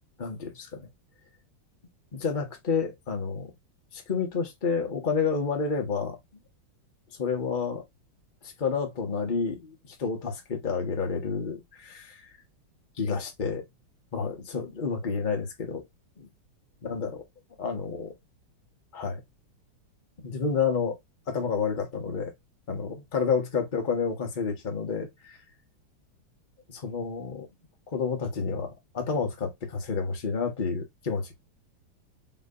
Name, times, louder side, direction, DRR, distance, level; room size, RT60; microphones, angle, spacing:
voice 1, 0.2-0.9 2.1-3.5 3.9-6.2 7.2-7.8 8.4-12.3 13.0-13.6 14.1-15.8 16.2-16.3 16.8-17.2 17.6-18.1 18.9-19.2 20.2-21.0 21.3-22.3 22.7-25.4 26.7-27.5 27.9-31.3, left 5 dB, 25° left, 1.2 m, -30 dB
5.7 x 3.2 x 2.6 m
omnidirectional pair, 2.3 m